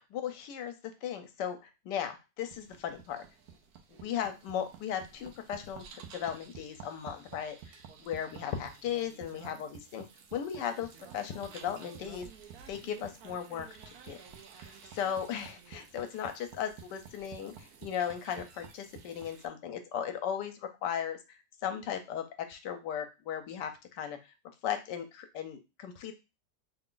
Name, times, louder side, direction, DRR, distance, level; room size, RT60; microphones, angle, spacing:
voice 1, 0.1-0.7 1.0-1.6 1.8-3.2 3.9-7.7 8.0-10.9 11.1-12.3 12.7-14.2 14.6-24.3 24.6-26.1, left 9 dB, 80° left, 7 dB, 1.3 m, -37 dB
sound 1, 2.4-19.5, right 7 dB, 70° right, 1.0 m, -51 dB
3.4 x 2.5 x 3.7 m, 0.27 s
omnidirectional pair, 1.9 m